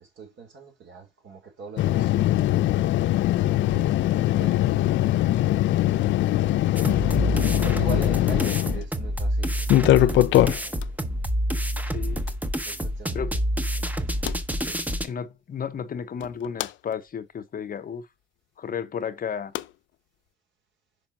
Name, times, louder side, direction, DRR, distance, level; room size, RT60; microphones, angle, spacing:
voice 1, 0.0-2.6 3.6-5.5 7.6-11.0 12.6-13.4 13.8-14.4 14.6-14.8, right 5 dB, 65° right, 3.0 m, -43 dB
sound 1, 1.8-8.8 9.6-10.8 12.3-12.4 14.3-14.4 16.2-16.7 19.5-19.6, left 14 dB, 70° left, 0.4 m, -21 dB
voice 2, 6.7-7.1 11.9-12.2 13.1-13.3 15.0-18.1 18.6-19.5, left 7 dB, 45° left, 0.8 m, -33 dB
sound 2, 6.8-15.1, equal, 10° right, 0.8 m, -28 dB
5.3 x 5.0 x 5.9 m
cardioid pair, 90°, 20 cm